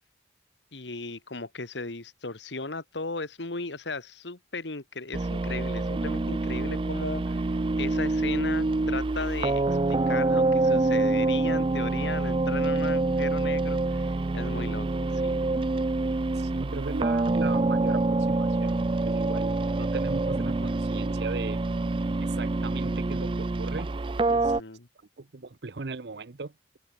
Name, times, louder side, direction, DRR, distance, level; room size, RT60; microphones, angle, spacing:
voice 1, 0.7-7.4 7.8-15.4 24.3-24.9, left 3 dB, 90° left, 2.0 m, -36 dB
sound 1, 5.1-24.6, right 2 dB, 30° right, 0.4 m, -26 dB
voice 2, 16.3-21.6 22.2-23.9 24.3-24.5 25.2-26.5, right 3 dB, 70° right, 0.8 m, -37 dB
open air
head